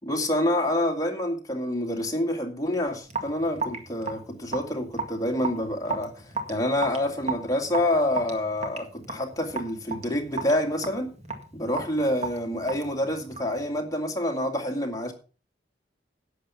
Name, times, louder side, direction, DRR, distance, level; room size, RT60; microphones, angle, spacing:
voice 1, 0.0-11.1 11.5-15.1, left 1 dB, 20° left, 2.2 m, -27 dB
Raindrop / Drip, 3.1-13.6, right 4 dB, 35° right, 2.0 m, -35 dB
11.0 x 8.2 x 5.7 m
head